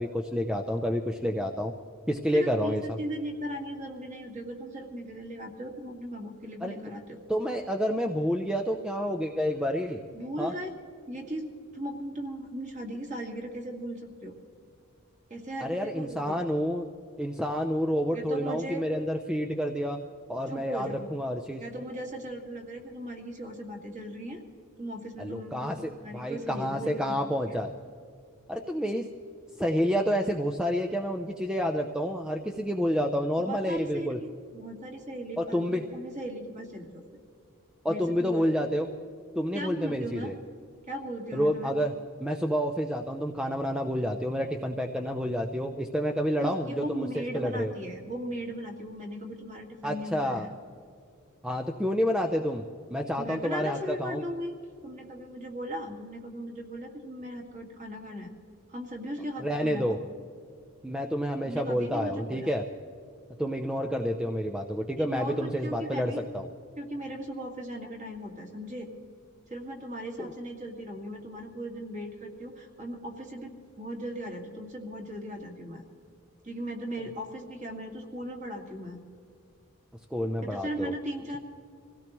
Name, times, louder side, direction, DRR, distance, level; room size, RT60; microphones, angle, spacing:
voice 1, 0.0-1.7 2.1-3.0 6.6-6.7 7.3-10.0 10.4-10.5 15.6-16.9 17.2-20.0 20.3-21.6 25.2-27.7 28.5-29.0 29.6-34.2 35.4-35.8 37.8-38.9 39.3-40.3 41.3-41.9 42.2-47.7 49.8-50.5 51.4-52.6 52.9-54.2 59.4-60.0 60.8-62.6 63.4-66.5 70.2-70.3 80.1-80.9, equal, 5° right, 3 dB, 0.5 m, -29 dB
voice 2, 2.3-7.2 10.1-10.7 11.1-11.5 11.7-14.3 15.3-16.4 18.1-18.8 20.5-21.1 21.6-24.4 24.8-27.2 27.5-27.6 33.5-34.3 34.5-37.0 37.9-38.5 39.5-40.3 40.9-41.7 46.4-50.5 53.2-54.5 54.8-58.3 58.7-60.0 61.4-62.5 65.0-66.2 66.8-68.9 69.5-75.8 76.4-79.0 80.4-81.4, equal, 30° right, 1 dB, 2.1 m, -37 dB
25.5 x 16.5 x 3.1 m, 2.3 s
head